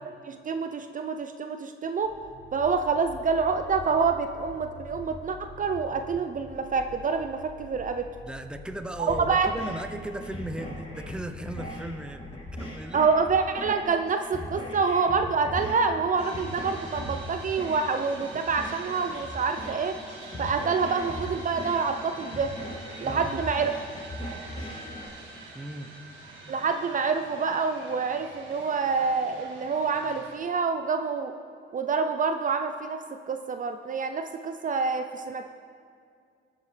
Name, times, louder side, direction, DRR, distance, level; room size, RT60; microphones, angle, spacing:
voice 1, 0.3-2.1 2.5-8.1 9.1-9.5 12.9-20.0 20.4-22.5 23.0-23.7 26.5-31.3 31.7-35.4, right 5 dB, 40° right, 7 dB, 0.6 m, -27 dB
sound 1, 2.0-19.0, left 3 dB, 60° left, 1.1 m, -48 dB
voice 2, 8.2-12.2 12.6-13.0 13.9-14.0 23.0-23.3 25.5-25.9, right 1 dB, 5° right, 7 dB, 0.7 m, -37 dB
sound 2, 9.1-25.1, equal, 35° left, 3.6 m, -39 dB
sound 3, 16.2-30.4, right 2 dB, 70° right, 1.9 m, -45 dB
19.5 x 8.9 x 3.4 m, 2.3 s
cardioid pair, 90°, 20 cm